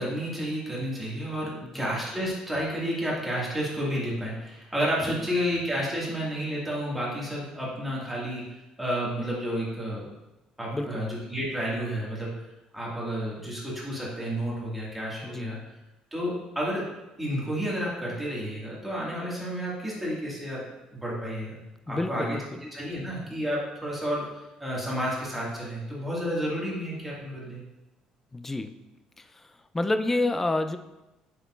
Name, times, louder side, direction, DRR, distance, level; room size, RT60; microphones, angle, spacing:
voice 1, 0.0-8.5 8.8-10.1 10.6-12.3 12.7-15.6 16.1-16.9 17.2-21.6 21.9-27.6, equal, 5° right, -6 dB, 1.8 m, -31 dB
voice 2, 10.7-11.1 15.2-15.6 21.9-22.5 28.3-28.8 29.2-30.8, left 2 dB, 10° left, 9 dB, 0.3 m, -29 dB
6.9 x 5.9 x 2.4 m, 1.0 s
cardioid pair, 140°, 2 cm